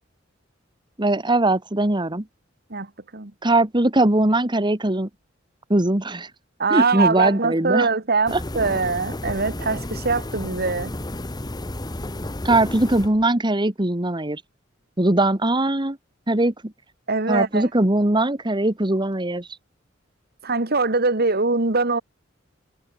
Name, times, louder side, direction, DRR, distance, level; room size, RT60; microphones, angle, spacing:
voice 1, 1.0-2.2 3.4-5.1 5.7-6.3 6.7-7.9 8.3-8.4 12.4-14.4 15.0-16.0 16.3-16.7 17.3-19.5, right 2 dB, 25° right, 1.8 m, -20 dB
voice 2, 2.7-3.3 6.6-10.9 17.1-17.7 20.4-22.0, right 4 dB, 55° right, 2.1 m, -22 dB
sound 1, 8.3-13.2, left 1 dB, 20° left, 1.1 m, -32 dB
head